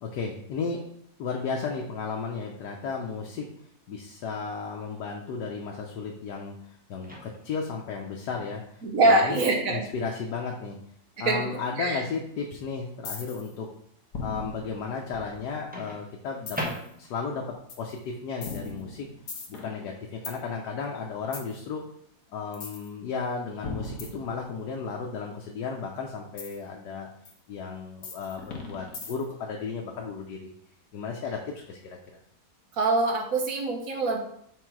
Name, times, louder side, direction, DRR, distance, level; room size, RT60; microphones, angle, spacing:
voice 1, 0.0-0.8 1.2-3.5 3.9-6.6 6.9-10.8 11.2-13.7 14.2-16.6 17.0-19.1 19.5-21.8 22.3-27.1 27.5-30.5 30.9-32.0, left 5 dB, 90° left, 0 dB, 1.4 m, -34 dB
Microwave oven, 7.0-7.7 9.7-9.9 15.7-17.3, equal, 5° right, 0.8 m, -38 dB
voice 2, 8.8-9.8 11.3-11.4 11.8-12.0 32.8-34.2, right 2 dB, 60° right, 2 dB, 1.4 m, -23 dB
sound 1, 13.0-13.5 14.1-15.7 16.5-16.9 17.7-17.9 18.4-20.4 21.3-21.5 22.5-22.9 23.6-24.8 26.4-26.6 27.2-27.3 28.0-29.4, left 3 dB, 60° left, 1.5 m, -38 dB
6.5 x 3.9 x 4.6 m, 0.68 s
omnidirectional pair, 1.7 m